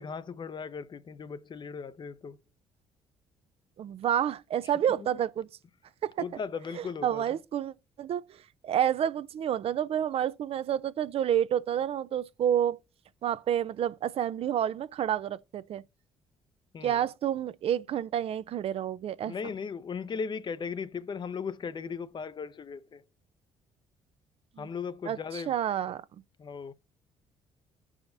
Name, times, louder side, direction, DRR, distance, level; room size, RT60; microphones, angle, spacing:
voice 1, 0.0-2.4 6.2-7.2 16.7-17.0 19.3-23.0 24.6-25.5 26.4-26.7, left 5 dB, 40° left, 0.6 m, -37 dB
voice 2, 3.8-5.5 6.0-6.3 6.7-12.8 13.2-15.8 16.8-19.3 24.6-24.7 25.1-26.0, right 10 dB, 55° right, 0.5 m, -29 dB
14.0 x 4.9 x 2.6 m
supercardioid pair, 60°, 12 cm